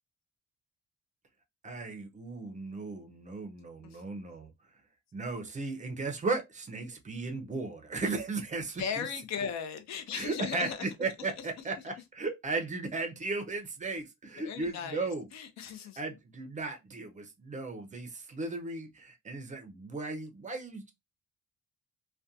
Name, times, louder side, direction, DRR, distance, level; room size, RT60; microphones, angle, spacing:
voice 1, 1.6-4.5 5.1-9.1 10.1-15.3 16.0-20.9, right 3 dB, 25° right, 0.4 m, -36 dB
voice 2, 8.8-10.9 14.4-16.0, left 7 dB, 65° left, 0.6 m, -37 dB
2.4 x 2.2 x 2.6 m
cardioid pair, 145°, 29 cm